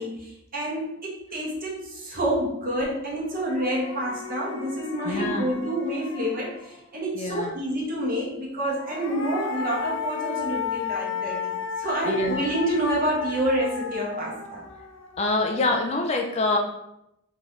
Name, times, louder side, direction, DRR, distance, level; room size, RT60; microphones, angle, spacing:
voice 1, 0.0-14.6, right 1 dB, 40° right, -3 dB, 1.3 m, -28 dB
sound 1, 2.8-2.9 3.2-6.9 8.6-15.8, left 6 dB, 65° left, 0.7 m, -34 dB
voice 2, 5.0-5.5 7.1-7.5 12.0-12.4 15.2-16.6, left 2 dB, 30° left, 2 dB, 0.4 m, -25 dB
3.6 x 3.2 x 4.0 m, 0.82 s
head